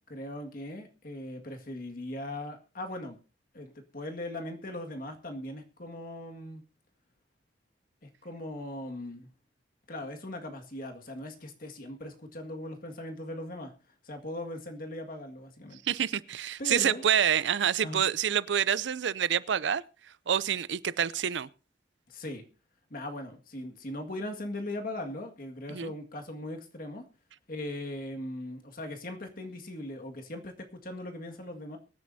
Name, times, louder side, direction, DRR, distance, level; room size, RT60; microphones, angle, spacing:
voice 1, 0.1-3.2 3.5-6.6 8.0-9.3 9.9-13.7 14.0-15.8 16.6-17.0 17.8-18.0 22.1-22.4 22.9-27.1 27.5-31.8, left 1 dB, 50° left, 1.9 m, -39 dB
voice 2, 15.8-19.8 20.3-21.5 25.7-25.9, right 8 dB, 75° right, 0.5 m, -27 dB
23.5 x 9.5 x 2.7 m
head